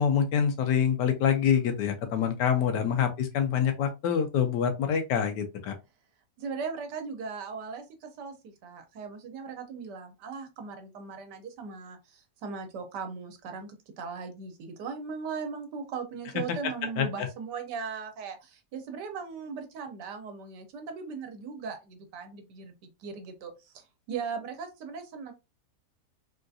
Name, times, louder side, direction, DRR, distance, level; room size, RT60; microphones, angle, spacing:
voice 1, 0.0-5.7 16.5-16.6 17.0-17.3, left 8 dB, 85° left, 1.3 m, -26 dB
voice 2, 6.4-25.3, right 5 dB, 85° right, 1.4 m, -38 dB
3.6 x 2.4 x 2.6 m
omnidirectional pair, 1.8 m